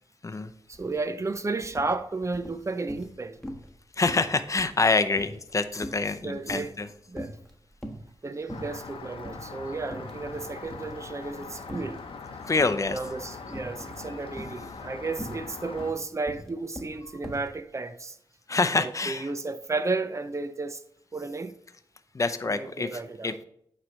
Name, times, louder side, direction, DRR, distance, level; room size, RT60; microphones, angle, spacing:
sound 1, 0.7-0.9 1.2-1.9 2.3-3.2 3.4-3.8 4.1-6.9 7.1-8.1 8.5-8.9 9.2-9.4 9.8-10.4 10.7-12.1 12.6-13.0 13.5-14.0 14.3-17.5, equal, 5° left, 1.4 m, -41 dB
voice 1, 0.7-3.4 6.2-6.7 7.1-7.4 8.2-12.0 12.9-18.2 18.8-20.8 21.1-21.5 22.4-23.4, right 3 dB, 35° right, 0.6 m, -33 dB
voice 2, 4.0-6.9 12.4-13.0 18.5-19.3 22.1-23.3, left 3 dB, 35° left, 0.6 m, -26 dB
Rain, 8.5-15.9, left 4 dB, 85° left, 0.8 m, -42 dB
8.9 x 3.3 x 6.2 m
cardioid pair, 65°, 9 cm